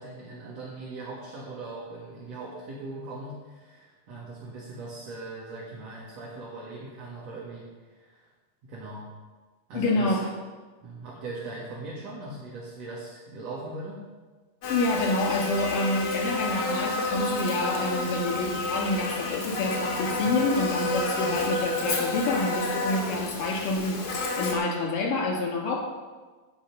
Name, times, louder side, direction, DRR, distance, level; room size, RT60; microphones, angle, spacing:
voice 1, 0.0-8.3 8.6-9.1 9.7-10.2 10.8-14.0 20.2-20.4, right 2 dB, 55° right, -5 dB, 2.8 m, -40 dB
voice 2, 9.7-10.3 14.7-25.8, left 2 dB, 70° left, -2 dB, 4.2 m, -28 dB
Buzz, 14.6-24.5, left 2 dB, 50° left, 2.7 m, -30 dB
16.5 x 5.7 x 6.0 m, 1.3 s
omnidirectional pair, 3.9 m